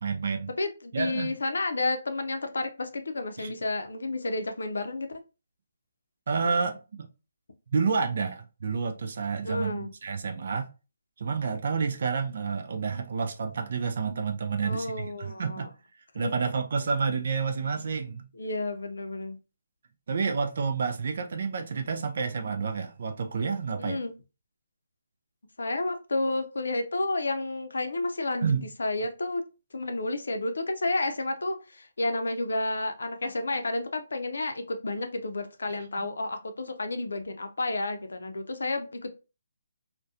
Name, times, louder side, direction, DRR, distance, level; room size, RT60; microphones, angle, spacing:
voice 1, 0.0-0.5 0.9-1.3 3.4-3.5 6.3-7.1 7.7-10.7 11.2-15.7 16.1-18.3 20.1-24.1 28.4-28.7 35.7-36.1, right 5 dB, 55° right, 0.3 m, -29 dB
voice 2, 0.6-5.1 9.4-9.9 14.6-15.7 16.2-16.3 18.4-19.4 23.8-24.1 25.6-28.5 28.8-29.4 29.7-39.1, left 2 dB, 80° left, 0.5 m, -31 dB
2.3 x 2.1 x 2.6 m
hypercardioid pair, 155°, 0 cm